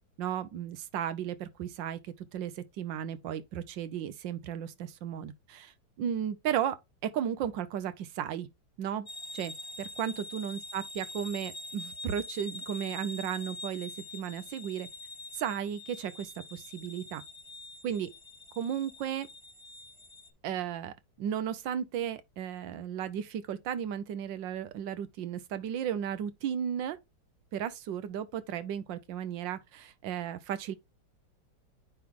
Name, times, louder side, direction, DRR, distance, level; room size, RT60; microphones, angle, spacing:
voice 1, 0.2-2.0 2.3-5.7 6.0-6.8 7.0-8.5 8.8-9.1 9.3-14.9 15.3-17.2 17.8-18.1 18.6-19.3 20.4-27.0 27.5-30.8, right 9 dB, 80° right, 1.5 m, -34 dB
sound 1, 9.1-20.3, left 2 dB, 25° left, 0.6 m, -45 dB
9.5 x 3.4 x 3.6 m
omnidirectional pair, 2.0 m